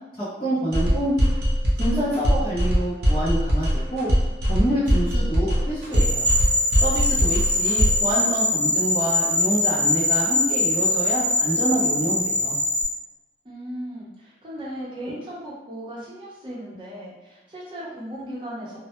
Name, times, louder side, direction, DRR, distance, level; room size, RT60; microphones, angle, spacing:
voice 1, 0.2-1.3 1.8-4.1 4.5-6.3 6.8-12.5, right 1 dB, 25° left, -12 dB, 0.6 m, -27 dB
sound 1, 0.7-8.1, equal, 65° right, 0.6 m, -22 dB
sound 2, 5.9-12.8, left 2 dB, 10° right, 1.0 m, -22 dB
voice 2, 13.4-18.8, equal, 25° right, -7 dB, 0.7 m, -36 dB
2.1 x 2.0 x 2.9 m, 1.1 s
head